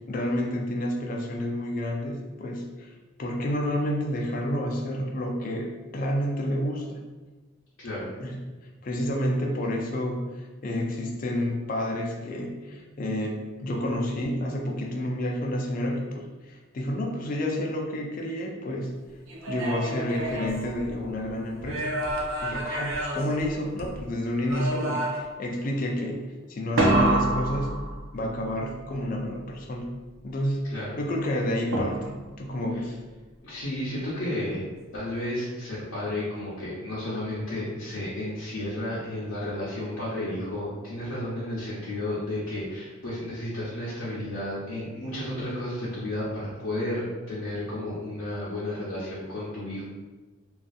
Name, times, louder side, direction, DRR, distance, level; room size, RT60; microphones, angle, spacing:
voice 1, 0.1-2.9 3.2-7.0 8.2-8.4 8.8-18.9 19.5-21.9 22.4-26.2 26.5-27.7 28.1-29.9 30.2-30.6 31.0-33.0, left 1 dB, 40° left, 1 dB, 0.3 m, -29 dB
voice 2, 7.8-8.1 30.6-31.0 33.4-34.6 34.9-49.8, left 1 dB, 75° left, -9 dB, 0.6 m, -32 dB
sound 1, 19.3-21.2 21.6-24.0 24.5-25.4 26.8-28.4 31.7-32.4, right 1 dB, 70° right, 0.5 m, -28 dB
2.6 x 2.3 x 2.3 m, 1.2 s
head